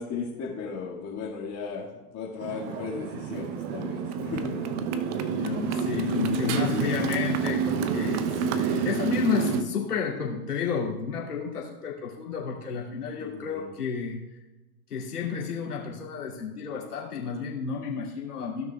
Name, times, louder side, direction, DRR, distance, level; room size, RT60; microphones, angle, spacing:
voice 1, 0.0-1.9 2.1-4.7 6.2-6.9 13.2-13.7, left 5 dB, 35° left, -6 dB, 1.9 m, -35 dB
Motorcycle, 2.4-9.6, right 6 dB, 45° right, 0.8 m, -28 dB
voice 2, 5.4-8.2 8.5-14.2 14.9-18.7, left 6 dB, 80° left, -3 dB, 2.7 m, -31 dB
16.5 x 6.3 x 2.3 m, 1.1 s
hypercardioid pair, 105°, 45 cm